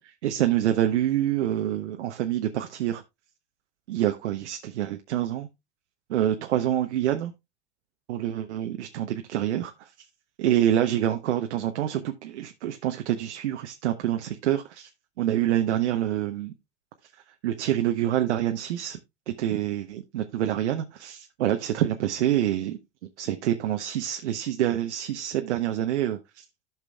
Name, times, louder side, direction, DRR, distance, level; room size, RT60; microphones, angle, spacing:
voice 1, 0.2-3.0 3.9-5.5 6.1-7.3 8.1-9.9 10.4-14.9 15.2-16.5 17.4-19.0 19.3-22.8 23.2-26.4, right 12 dB, 80° right, 0.8 m, -26 dB
14.0 x 6.0 x 2.2 m
hypercardioid pair, 90°, 34 cm